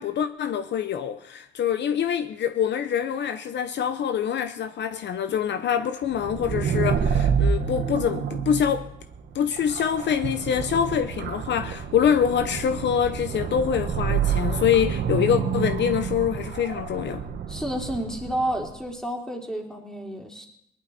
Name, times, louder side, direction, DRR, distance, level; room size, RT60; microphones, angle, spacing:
voice 1, 0.0-8.9 9.3-17.2, left 8 dB, 65° left, 0.8 m, -25 dB
sound 1, 6.1-18.7, right 7 dB, 60° right, 1.5 m, -28 dB
voice 2, 17.5-20.5, right 1 dB, 5° left, 3.1 m, -30 dB
19.0 x 11.5 x 4.2 m
cardioid pair, 90°, 20 cm